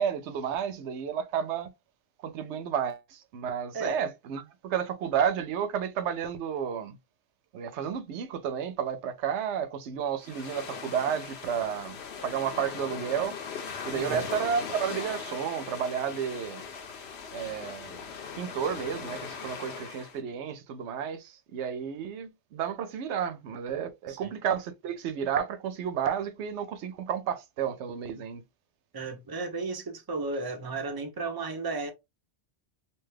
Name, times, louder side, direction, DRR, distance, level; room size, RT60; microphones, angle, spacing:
voice 1, 0.0-1.7 2.2-7.0 7.5-13.4 13.8-16.6 17.3-18.0 18.4-28.4, right 8 dB, 85° right, 0.9 m, -31 dB
sound 1, 10.2-20.2, left 6 dB, 70° left, 0.9 m, -39 dB
voice 2, 13.9-14.3 24.1-24.3 28.9-31.9, right 3 dB, 25° right, 0.5 m, -34 dB
2.8 x 2.2 x 3.2 m
omnidirectional pair, 1.2 m